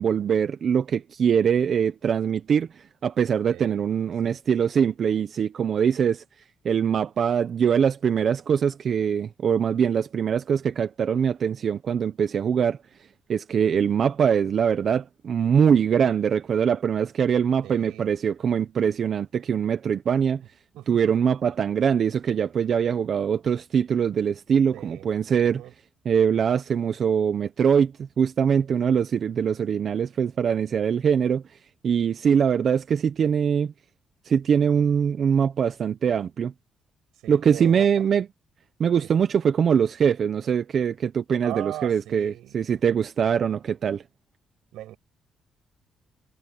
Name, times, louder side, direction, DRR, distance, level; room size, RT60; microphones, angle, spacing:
voice 1, 0.0-6.2 6.6-12.8 13.3-20.4 20.9-25.6 26.0-27.9 28.2-31.4 31.8-33.7 34.2-36.5 37.3-38.3 38.8-44.0, right 7 dB, 55° right, 1.0 m, -23 dB
voice 2, 3.5-3.8 4.2-4.4 17.6-18.1 20.7-21.1 24.7-25.1 25.4-25.7 37.2-37.9 39.0-39.1 41.4-42.6 44.7-45.0, right 14 dB, 85° right, 6.3 m, -39 dB
cardioid pair, 90°, 0 cm